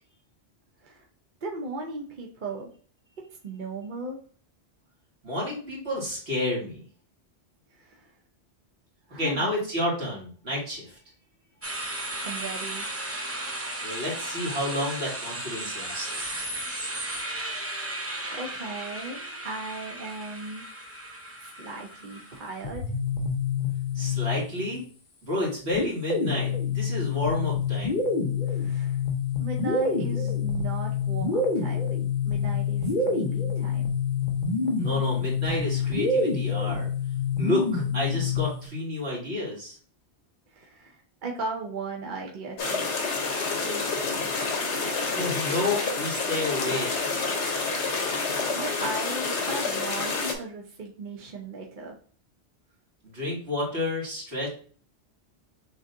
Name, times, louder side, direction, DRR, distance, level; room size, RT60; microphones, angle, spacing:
voice 1, 1.4-2.7 3.4-4.2 7.7-8.1 9.1-9.5 12.2-12.8 18.3-20.6 21.4-22.9 28.5-29.0 29.4-32.0 32.2-33.9 40.5-42.9 43.5-44.5 48.5-51.9, right 3 dB, 50° right, 0 dB, 0.9 m, -37 dB
voice 2, 5.2-6.8 9.1-11.0 13.8-16.3 23.9-24.8 25.2-28.0 34.8-36.9 37.4-39.8 45.1-46.9 53.0-54.5, left 1 dB, 70° right, -4 dB, 2.3 m, -30 dB
sound 1, 11.6-22.6, right 1 dB, 15° right, 0.5 m, -35 dB
sound 2, 22.6-24.8 25.7-38.7, left 5 dB, 45° left, 0.9 m, -27 dB
sound 3, 42.6-50.3, left 4 dB, 85° left, 1.3 m, -28 dB
6.5 x 3.1 x 2.6 m, 0.43 s
omnidirectional pair, 1.2 m